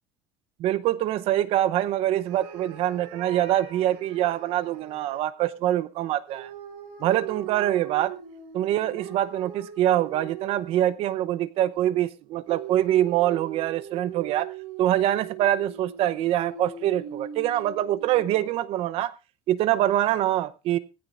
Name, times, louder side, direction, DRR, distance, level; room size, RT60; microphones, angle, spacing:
voice 1, 0.6-6.5 7.0-8.1 8.5-14.5 14.8-19.1 19.5-20.8, right 13 dB, 55° right, 16 dB, 0.8 m, -24 dB
sound 1, 2.2-5.2 6.3-11.0 12.5-18.6, right 8 dB, 90° right, 4.9 m, -40 dB
18.5 x 15.0 x 2.5 m, 0.27 s
cardioid pair, 155°, 12 cm